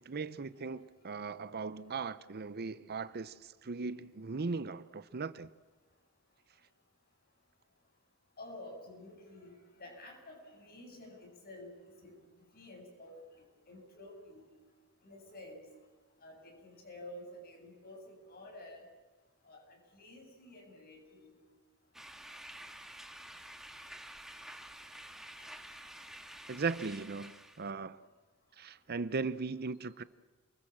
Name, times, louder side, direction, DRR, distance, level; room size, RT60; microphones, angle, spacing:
voice 1, 0.0-5.5 26.5-28.0 28.6-30.0, right 4 dB, 45° right, 0.7 m, -38 dB
voice 2, 8.4-9.5 9.8-12.1 12.5-13.2 13.7-14.4 15.0-15.6 16.2-18.8 19.4-19.6 19.9-21.3 25.4-25.5, left 1 dB, 45° left, 7.5 m, -50 dB
sound 1, 21.9-27.7, right 1 dB, ahead, 1.9 m, -49 dB
28.5 x 21.5 x 7.4 m
head